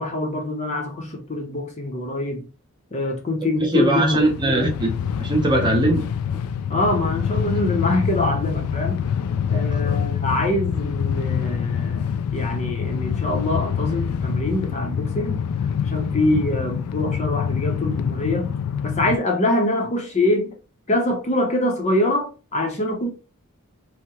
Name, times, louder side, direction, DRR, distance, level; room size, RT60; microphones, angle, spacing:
voice 1, 0.0-2.5 2.9-4.3 6.7-9.0 9.5-18.5 18.8-20.5 20.9-23.1, left 1 dB, 30° left, 0.6 m, -24 dB
voice 2, 3.6-4.9 5.2-6.1 6.3-6.4 9.8-10.1, right 2 dB, 20° right, 0.7 m, -21 dB
Train, 4.0-19.2, left 7 dB, 85° left, 0.3 m, -25 dB
3.5 x 2.0 x 2.8 m
head